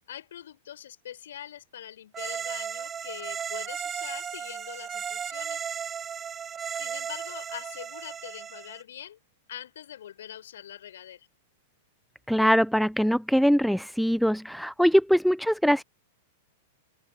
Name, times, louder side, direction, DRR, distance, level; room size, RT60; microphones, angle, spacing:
voice 1, 0.1-5.6 6.7-9.2 9.5-11.3, left 10 dB, 65° left, 4.9 m, -43 dB
sound 1, 2.1-8.8, right 8 dB, 20° right, 2.1 m, -35 dB
voice 2, 12.3-15.8, equal, ahead, 0.8 m, -22 dB
figure-of-eight pair, 95°, 0 cm